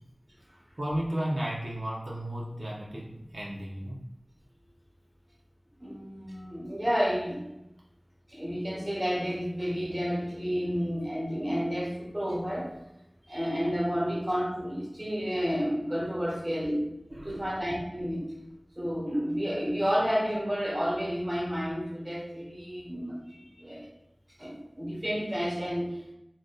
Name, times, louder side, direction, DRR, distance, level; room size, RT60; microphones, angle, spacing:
voice 1, 0.8-4.0 17.1-17.5, right 1 dB, 75° right, -5 dB, 0.6 m, -34 dB
voice 2, 5.8-7.5 8.3-12.7 13.3-16.9 17.2-18.3 18.8-23.9 24.4-26.0, equal, 25° right, -3 dB, 1.0 m, -31 dB
2.6 x 2.2 x 3.6 m, 0.89 s
wide cardioid pair, 40°, 0 cm